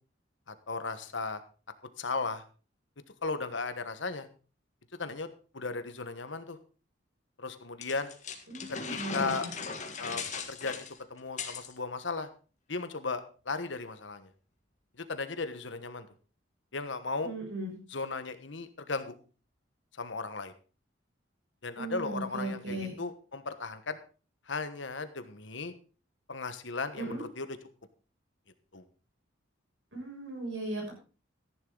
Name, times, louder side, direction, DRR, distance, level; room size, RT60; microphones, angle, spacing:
voice 1, 0.5-1.4 2.0-2.4 3.2-4.3 5.0-5.3 5.5-6.6 7.4-8.1 8.7-9.5 10.0-10.2 10.5-12.3 12.7-14.3 15.0-16.1 16.7-17.3 17.9-19.1 20.0-20.5 21.6-24.0 24.5-25.7 26.3-27.6 28.7-28.8, left 4 dB, 70° left, 10 dB, 1.3 m, -36 dB
sound 1, 7.8-11.7, left 5 dB, 40° left, 1.8 m, -38 dB
voice 2, 8.5-9.4 17.2-17.7 21.8-22.9 27.0-27.2 29.9-30.9, right 2 dB, 70° right, 0 dB, 6.8 m, -37 dB
14.0 x 10.5 x 3.9 m, 0.36 s
head